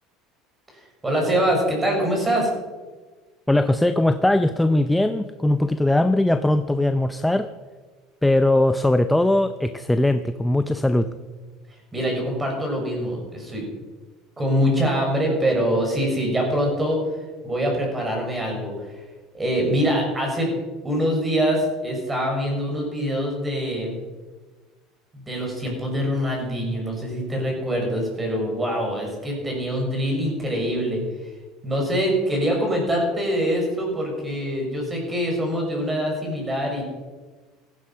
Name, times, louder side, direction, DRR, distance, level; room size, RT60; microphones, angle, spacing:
voice 1, 0.7-2.5 11.9-13.6 14.4-17.0 17.4-19.0 19.3-20.5 20.8-24.1 25.1-31.0 31.6-36.8, equal, 15° right, 0 dB, 6.4 m, -24 dB
voice 2, 3.5-7.5 8.2-11.1, left 1 dB, 5° left, 9 dB, 0.6 m, -20 dB
17.0 x 14.5 x 5.7 m, 1.3 s
supercardioid pair, 135°, 0 cm